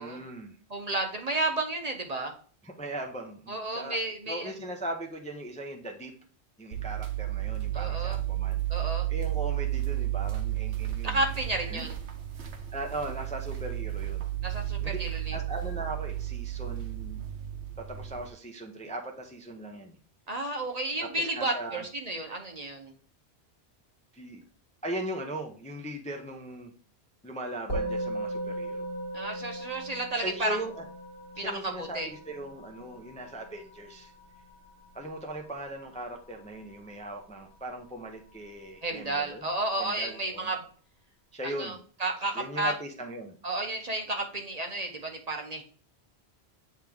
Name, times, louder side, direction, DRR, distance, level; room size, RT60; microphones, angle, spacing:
voice 1, 0.0-0.6 2.6-6.1 6.6-8.6 8.9-11.2 11.7-11.9 12.4-14.3 14.8-15.0 15.3-17.2 17.8-20.0 21.0-21.9 24.1-24.4 24.8-26.7 27.2-28.9 30.2-30.8 31.4-34.1 34.9-39.5 39.8-40.5 41.3-41.8 42.3-43.4, right 1 dB, 10° left, 2 dB, 0.5 m, -39 dB
voice 2, 0.7-2.3 3.5-4.5 7.7-8.2 8.7-9.1 11.0-12.0 14.4-15.4 20.3-22.9 29.1-30.6 31.4-32.1 38.8-40.6 41.4-42.7 43.4-45.6, right 2 dB, 40° right, 3 dB, 0.9 m, -32 dB
sound 1, 6.7-18.3, right 14 dB, 75° right, 1.0 m, -32 dB
Musical instrument, 27.7-37.2, right 1 dB, 55° left, 1.9 m, -38 dB
8.8 x 3.1 x 3.5 m, 0.43 s
omnidirectional pair, 1.1 m